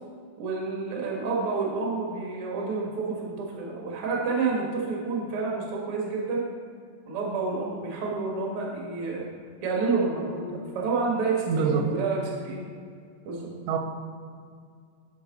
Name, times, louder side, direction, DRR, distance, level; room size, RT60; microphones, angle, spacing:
voice 1, 0.4-6.4 7.1-9.2 9.6-12.7 13.2-13.5, right 4 dB, 65° right, -2 dB, 1.4 m, -29 dB
voice 2, 11.5-11.9 13.7-13.8, right 6 dB, 85° right, 5 dB, 3.0 m, -24 dB
11.0 x 5.3 x 4.1 m, 2.1 s
omnidirectional pair, 5.1 m